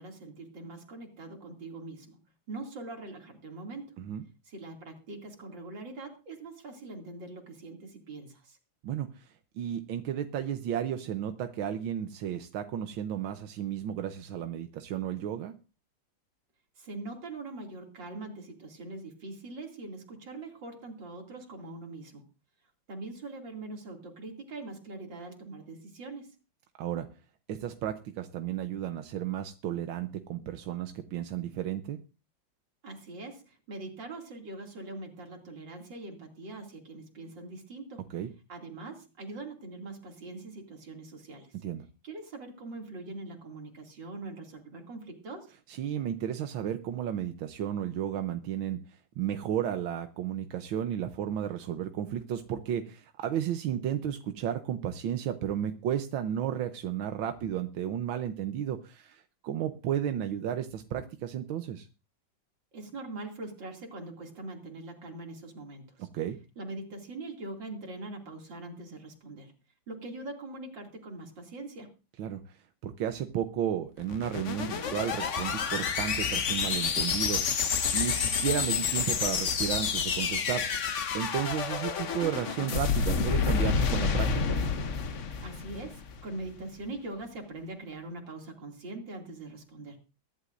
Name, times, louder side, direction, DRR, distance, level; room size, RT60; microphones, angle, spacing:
voice 1, 0.0-2.2 2.5-4.0 4.5-8.6 16.8-22.2 22.9-26.4 32.8-38.0 38.5-41.5 42.0-45.5 62.7-66.1 66.6-69.5 69.9-71.9 85.4-90.0, right 2 dB, 65° right, 2 dB, 3.4 m, -42 dB
voice 2, 8.8-15.5 26.8-27.1 27.5-32.0 38.1-38.3 41.5-41.8 45.7-61.9 66.0-66.4 72.2-72.6 72.8-77.6 77.9-80.6 81.1-84.6, right 10 dB, 90° right, 7 dB, 1.6 m, -33 dB
sound 1, 74.0-86.3, left 6 dB, 50° left, 1.0 m, -29 dB
23.0 x 11.5 x 2.6 m, 0.32 s
omnidirectional pair, 2.1 m